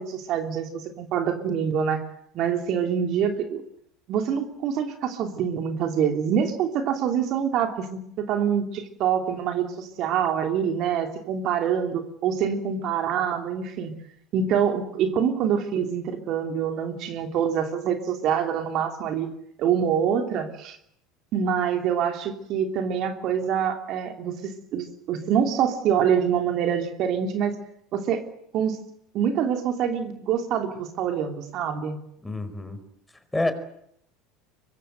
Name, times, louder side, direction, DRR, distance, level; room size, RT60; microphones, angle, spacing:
voice 1, 0.0-2.0 2.3-3.6 4.1-8.0 8.3-13.9 14.3-19.3 19.6-20.8 21.3-27.5 27.9-28.2 28.5-28.8 29.1-32.0, right 8 dB, 50° right, 5 dB, 2.9 m, -25 dB
voice 2, 32.2-32.8 33.3-33.5, left 2 dB, 10° left, 10 dB, 4.6 m, -27 dB
24.0 x 22.5 x 7.8 m, 0.73 s
hypercardioid pair, 75°, 0 cm